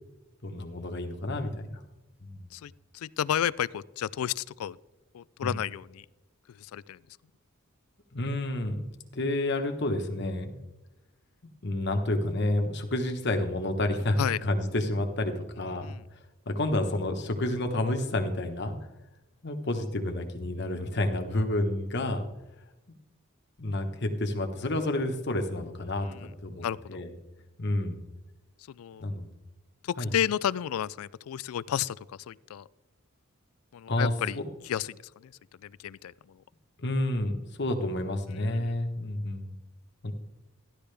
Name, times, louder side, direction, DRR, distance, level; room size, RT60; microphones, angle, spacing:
voice 1, 0.4-1.8 2.2-2.5 5.4-5.6 8.1-8.8 9.1-10.6 11.6-15.9 16.5-18.7 19.4-22.2 23.6-27.1 27.6-28.0 29.0-29.3 30.0-30.1 33.9-34.5 36.8-39.5 40.0-40.1, left 1 dB, 50° left, 5 dB, 1.2 m, -30 dB
voice 2, 2.5-4.8 5.1-6.1 6.6-7.0 14.2-14.4 15.8-16.0 25.9-26.3 26.6-27.0 28.7-29.1 29.9-32.0 32.3-32.6 33.7-34.4 34.6-35.3 35.6-36.4 38.5-38.7, left 9 dB, 85° left, 20 dB, 0.3 m, -32 dB
13.5 x 11.5 x 3.4 m, 1.0 s
head